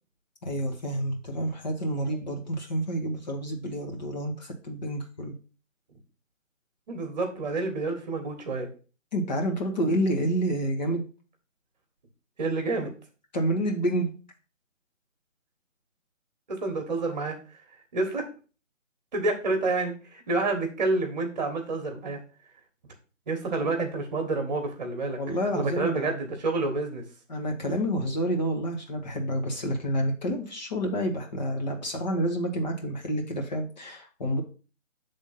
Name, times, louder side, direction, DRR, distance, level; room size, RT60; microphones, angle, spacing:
voice 1, 0.4-5.3 9.1-11.0 12.8-12.9 13.3-14.1 25.2-26.2 27.3-34.4, equal, 35° left, 1 dB, 1.2 m, -29 dB
voice 2, 6.9-8.7 12.4-12.9 16.5-17.4 17.9-18.3 19.1-22.2 23.3-25.2 25.5-27.0, right 3 dB, 35° right, 4 dB, 1.4 m, -28 dB
7.2 x 3.6 x 5.6 m, 0.36 s
figure-of-eight pair, 155°, 39 cm